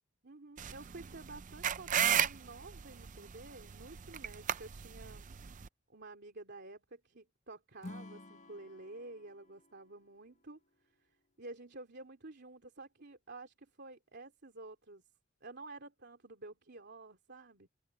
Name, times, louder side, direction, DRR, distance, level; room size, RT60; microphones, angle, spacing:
voice 1, 0.2-5.3 5.9-10.6 11.4-15.0 15.4-17.7, right 2 dB, 55° right, 3.0 m, -51 dB
sound 1, 0.6-5.7, right 9 dB, 40° right, 0.5 m, -35 dB
Acoustic guitar / Strum, 7.8-11.1, left 2 dB, 35° left, 1.5 m, -52 dB
head